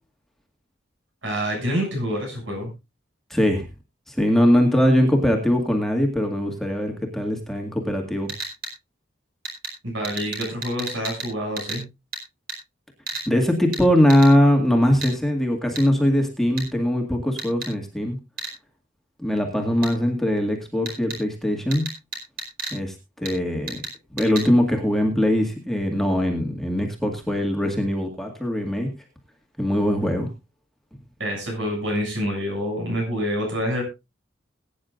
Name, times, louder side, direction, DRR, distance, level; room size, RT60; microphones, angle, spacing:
voice 1, 1.2-2.7 9.8-11.8 31.2-33.8, equal, 75° right, 1 dB, 7.1 m, -27 dB
voice 2, 3.3-3.6 4.1-8.3 13.3-18.2 19.2-21.9 22.7-23.8 24.1-28.9 29.6-30.3, equal, ahead, 2 dB, 2.1 m, -21 dB
sound 1, 8.3-8.7 9.4-9.7 10.0-11.3 11.6-11.8 12.1-12.2 12.5-12.6 13.1-13.3 13.7-13.8 14.1-14.3 15.0-15.1 15.7-15.8 16.6-16.7 17.4-17.7 18.4-18.5 19.8-19.9 20.8-21.2 21.7-22.8 23.2-23.3 23.7-23.9 24.2-24.5, right 3 dB, 50° right, 4.7 m, -32 dB
21.0 x 9.7 x 2.5 m, 0.25 s
head